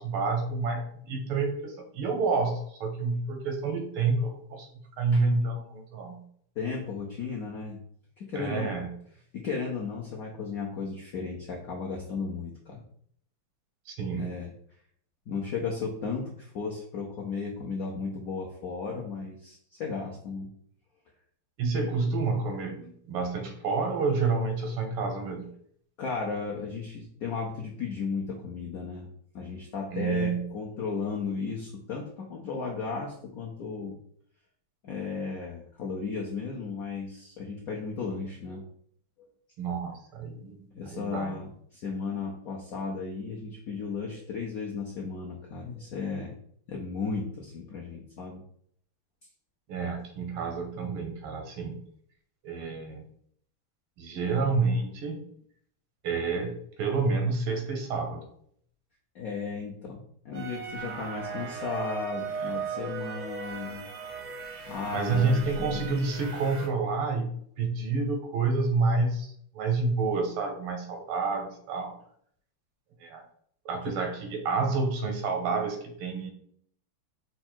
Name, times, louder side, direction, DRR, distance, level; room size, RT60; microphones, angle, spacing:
voice 1, 0.0-4.7 5.0-6.2 8.4-8.9 13.9-14.3 21.6-25.5 29.9-30.4 39.6-41.4 49.7-51.8 52.4-53.0 54.0-55.2 56.0-58.2 62.4-62.6 64.9-71.9 73.0-73.2 73.7-76.3, right 4 dB, 90° right, 5 dB, 1.8 m, -29 dB
voice 2, 6.6-7.8 8.2-8.8 9.3-12.8 14.1-14.5 15.3-20.5 26.0-29.1 29.3-34.0 34.8-38.6 39.2-39.3 40.7-41.5 41.7-46.3 46.7-48.4 59.1-63.9 64.7-65.9 73.9-74.0, left 4 dB, 80° left, -1 dB, 0.8 m, -35 dB
sound 1, 60.3-66.7, right 5 dB, 65° right, 0.7 m, -37 dB
4.7 x 2.3 x 4.3 m, 0.64 s
omnidirectional pair, 2.3 m